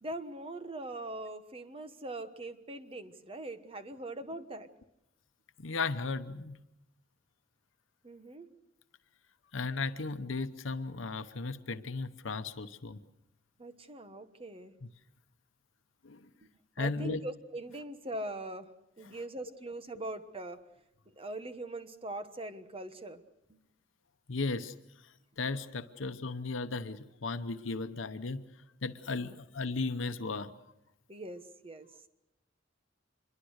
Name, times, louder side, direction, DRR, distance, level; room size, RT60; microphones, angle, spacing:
voice 1, 0.0-4.7 8.0-8.5 13.6-14.7 16.8-18.7 19.0-20.6 21.2-23.2 23.5-23.6 29.1-29.2 31.1-31.9, right 2 dB, 30° right, 10 dB, 1.2 m, -41 dB
voice 2, 5.6-6.6 9.5-13.0 14.8-14.9 16.0-16.2 16.8-17.2 19.0-19.2 24.3-24.7 25.4-28.5 28.8-30.5, left 3 dB, 80° left, 9 dB, 0.9 m, -35 dB
25.5 x 22.5 x 6.5 m, 0.85 s
head